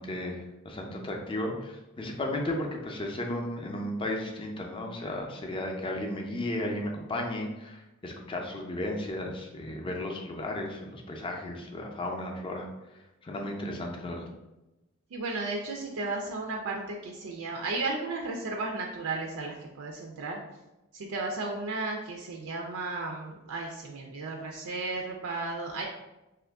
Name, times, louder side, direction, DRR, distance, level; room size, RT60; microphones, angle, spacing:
voice 1, 0.0-12.7 13.2-14.3, left 1 dB, 25° left, 1 dB, 0.4 m, -34 dB
voice 2, 15.1-20.4 20.9-25.8, right 3 dB, 85° right, 0 dB, 0.4 m, -34 dB
2.8 x 2.4 x 3.4 m, 0.99 s
head